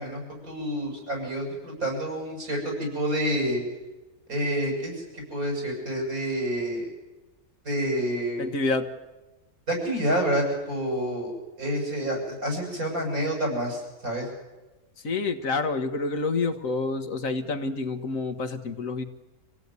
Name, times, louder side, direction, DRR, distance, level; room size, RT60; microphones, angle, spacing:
voice 1, 0.0-3.6 4.3-6.9 7.6-8.5 9.7-11.3 11.6-14.2, right 1 dB, 70° right, 1 dB, 8.5 m, -28 dB
voice 2, 8.4-8.9 15.0-19.0, left 3 dB, 60° left, 8 dB, 1.7 m, -28 dB
26.0 x 17.5 x 9.5 m, 1.1 s
omnidirectional pair, 1.6 m